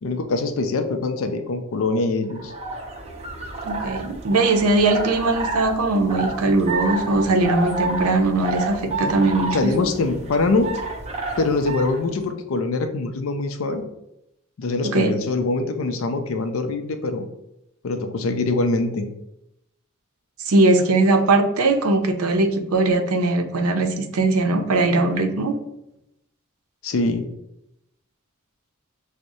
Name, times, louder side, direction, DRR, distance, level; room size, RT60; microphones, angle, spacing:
voice 1, 0.0-2.5 9.5-10.7 11.4-13.8 14.6-17.3 17.8-19.1 26.8-27.3, left 3 dB, 65° left, 7 dB, 0.4 m, -23 dB
sound 1, 2.3-12.0, right 3 dB, 30° right, 0.5 m, -30 dB
voice 2, 3.6-9.9 14.8-15.1 20.5-25.6, right 2 dB, 85° right, 6 dB, 0.5 m, -20 dB
6.1 x 2.0 x 2.6 m, 0.85 s
head